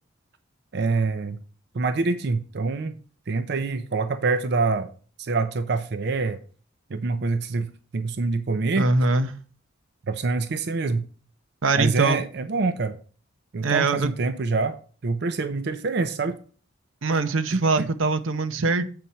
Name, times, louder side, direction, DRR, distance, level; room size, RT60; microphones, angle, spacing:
voice 1, 0.7-1.4 1.7-3.0 3.3-4.9 5.2-6.4 6.9-8.9 10.1-11.0 11.7-13.0 13.5-14.8 15.0-16.4 17.5-17.9, right 3 dB, 55° right, 0.5 m, -25 dB
voice 2, 8.8-9.3 11.6-12.2 13.6-14.1 17.0-18.8, right 3 dB, 90° right, 0.7 m, -22 dB
7.7 x 4.3 x 5.5 m
head